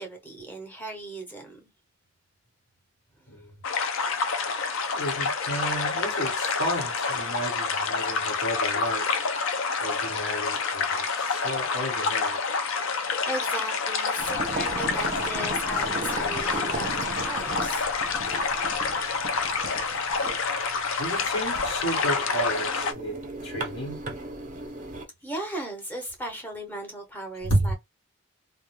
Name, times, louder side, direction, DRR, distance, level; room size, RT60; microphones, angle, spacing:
voice 1, 0.0-1.7 12.8-17.9 25.2-27.7, right 1 dB, 10° left, 0.6 m, -36 dB
sound 1, 3.6-22.9, left 4 dB, 70° left, 0.5 m, -28 dB
voice 2, 4.9-9.1 9.8-12.4 21.0-24.0 27.4-27.7, right 1 dB, 85° left, 1.0 m, -32 dB
sound 2, 14.2-25.0, right 2 dB, 35° right, 0.5 m, -37 dB
2.3 x 2.0 x 3.0 m
head